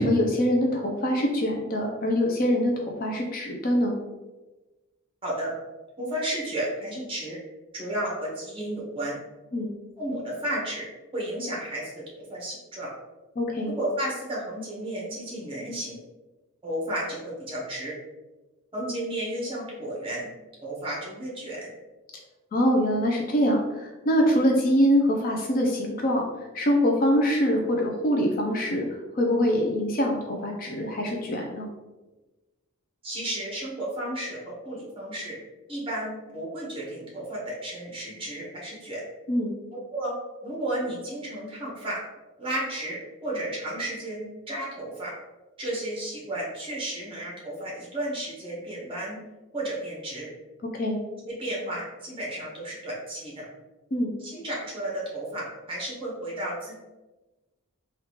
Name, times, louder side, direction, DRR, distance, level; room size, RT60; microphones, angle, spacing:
voice 1, 0.0-4.0 9.5-9.7 13.4-13.7 22.5-26.3 26.5-28.9 29.2-31.7 39.3-39.5 50.8-51.0 53.9-54.1, equal, 40° left, 1 dB, 0.4 m, -24 dB
voice 2, 5.2-5.5 6.0-7.4 7.7-9.2 10.0-10.9 11.1-12.9 13.6-16.0 16.6-17.9 18.7-20.3 20.6-21.7 33.0-35.4 35.7-39.0 39.9-40.1 40.4-42.0 42.4-45.1 45.6-49.2 49.5-50.3 51.3-53.4 54.2-56.8, right 1 dB, 25° right, -5 dB, 1.0 m, -33 dB
3.5 x 2.3 x 3.0 m, 1.1 s
head